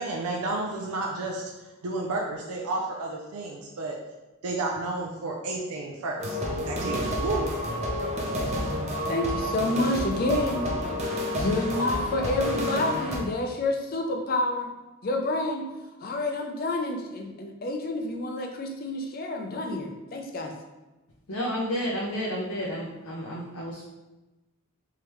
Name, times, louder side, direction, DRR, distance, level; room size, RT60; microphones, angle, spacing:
voice 1, 0.0-4.0 4.4-6.4 6.7-7.5, right 2 dB, 85° right, -1 dB, 0.5 m, -31 dB
sound 1, 6.2-13.2, equal, 30° right, 0.6 m, -30 dB
voice 2, 9.1-10.7 11.3-14.7 15.0-15.7 16.0-20.5, left 2 dB, 40° left, 3 dB, 0.5 m, -28 dB
voice 3, 21.3-23.8, equal, 85° left, -5 dB, 0.7 m, -31 dB
3.6 x 3.2 x 3.0 m, 1.1 s
head